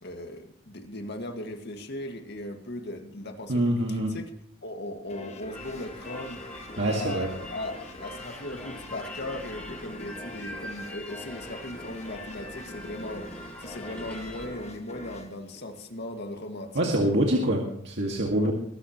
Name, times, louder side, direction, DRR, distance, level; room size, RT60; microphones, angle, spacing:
voice 1, 0.0-4.3 4.6-6.4 6.8-13.3 13.6-17.1 18.4-18.5, left 1 dB, 60° left, 5 dB, 2.0 m, -38 dB
voice 2, 3.5-4.1 6.8-7.3 16.7-18.5, right 1 dB, 65° right, -1 dB, 2.0 m, -25 dB
sound 1, 5.1-16.4, left 1 dB, 35° left, 1.6 m, -44 dB
sound 2, 5.5-14.5, left 1 dB, 10° left, 7.7 m, -43 dB
21.5 x 12.5 x 3.1 m, 0.66 s
head